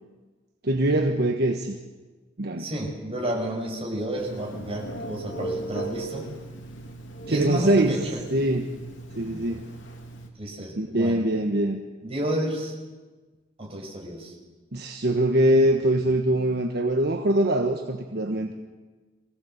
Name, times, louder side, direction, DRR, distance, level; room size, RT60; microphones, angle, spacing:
voice 1, 0.6-1.8 2.4-2.7 7.3-8.0 8.3-8.7 9.1-9.6 10.8-11.8 14.7-18.5, right 1 dB, 60° right, 4 dB, 1.3 m, -23 dB
voice 2, 2.6-6.3 7.2-8.3 9.3-9.4 10.4-11.2 12.0-12.7 13.6-14.3, right 1 dB, 30° right, 0 dB, 5.8 m, -31 dB
Telephone, 4.2-10.3, right 2 dB, 80° left, 3.1 m, -38 dB
23.5 x 17.0 x 8.0 m, 1.3 s
head